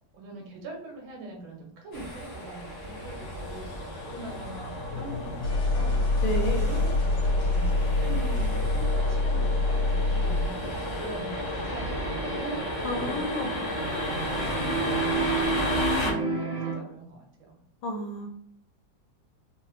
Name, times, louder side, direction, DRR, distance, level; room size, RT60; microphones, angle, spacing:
voice 1, 0.1-5.9 6.6-11.8 12.3-13.2 13.5-13.6 14.3-17.6, right 2 dB, 85° right, 0 dB, 1.7 m, -42 dB
sound 1, 1.9-16.1, left 1 dB, 50° left, 0.7 m, -33 dB
sound 2, 2.8-10.7, left 2 dB, 85° left, 1.6 m, -27 dB
voice 2, 6.2-6.7 12.8-13.5 17.8-18.3, equal, 65° left, 1 dB, 1.1 m, -31 dB
sound 3, 11.6-16.7, right 3 dB, 65° right, 0.6 m, -31 dB
3.9 x 2.0 x 3.0 m, 0.66 s
omnidirectional pair, 2.2 m